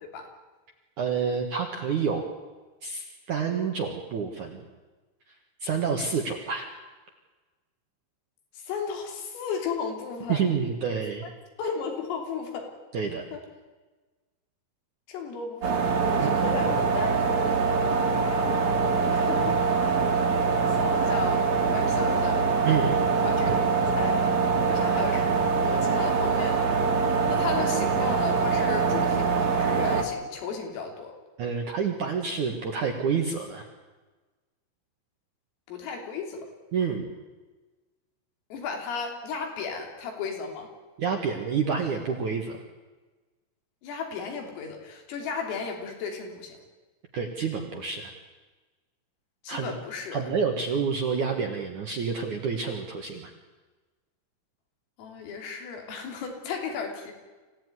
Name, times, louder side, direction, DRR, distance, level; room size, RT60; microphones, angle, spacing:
voice 1, 1.0-2.3 2.8-4.6 5.6-6.7 10.3-11.3 12.9-13.2 16.2-16.3 22.6-23.1 23.5-23.6 31.4-33.7 36.7-37.1 41.0-42.6 47.1-48.1 49.5-49.7 50.1-53.3, right 6 dB, 60° right, 3 dB, 2.1 m, -28 dB
voice 2, 8.5-10.4 11.6-12.7 13.3-13.4 15.1-17.9 19.1-19.6 20.6-22.5 23.2-24.3 24.7-25.3 25.6-26.8 27.2-31.1 35.7-36.5 38.5-40.7 43.8-46.6 49.4-50.4 55.0-57.1, left 5 dB, 85° left, 3 dB, 5.9 m, -34 dB
sound 1, 15.6-30.0, right 5 dB, 45° right, 2.7 m, -24 dB
26.5 x 16.0 x 9.7 m, 1.3 s
omnidirectional pair, 5.8 m